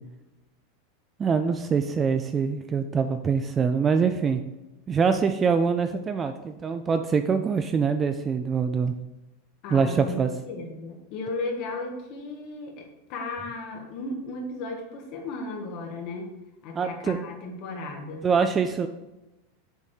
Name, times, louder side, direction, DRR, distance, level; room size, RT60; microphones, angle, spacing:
voice 1, 1.2-4.4 4.9-8.9 9.7-10.3 16.8-17.2 18.2-18.9, right 5 dB, 15° right, 8 dB, 0.3 m, -24 dB
voice 2, 9.6-10.2 10.5-16.3 16.6-18.3, left 2 dB, 40° left, 2 dB, 1.5 m, -35 dB
7.0 x 4.2 x 6.5 m, 1.0 s
supercardioid pair, 170°, 0 cm